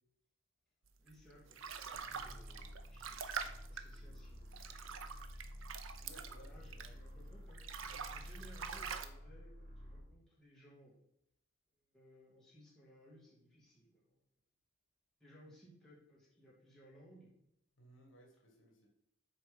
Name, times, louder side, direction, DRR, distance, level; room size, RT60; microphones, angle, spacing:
voice 1, 1.0-5.6 6.5-10.9 11.9-14.2 15.2-17.3 18.3-18.4, equal, ahead, -7 dB, 2.7 m, -62 dB
sound 1, 1.1-7.2 7.5-9.1, right 6 dB, 75° right, 0.7 m, -46 dB
sound 2, 1.9-10.1, equal, 45° right, 3.3 m, -51 dB
voice 2, 6.0-6.9 17.8-18.9, equal, 65° left, 1 dB, 1.9 m, -61 dB
7.8 x 4.5 x 5.3 m, 0.77 s
head